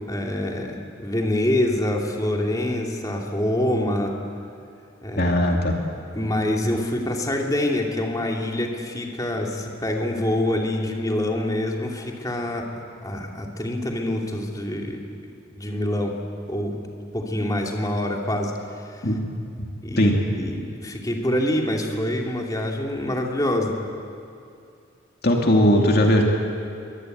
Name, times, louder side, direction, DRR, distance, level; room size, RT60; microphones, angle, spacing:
voice 1, 0.1-4.1 5.0-5.3 6.1-12.6 13.0-15.0 15.6-16.1 16.5-16.7 17.1-18.5 18.9-19.1 19.8-23.7, left 1 dB, 20° left, 0 dB, 2.7 m, -25 dB
voice 2, 5.2-5.8 19.0-19.2 20.0-20.2 25.2-26.2, equal, 50° left, 1 dB, 2.6 m, -18 dB
23.5 x 19.5 x 9.3 m, 2.5 s
head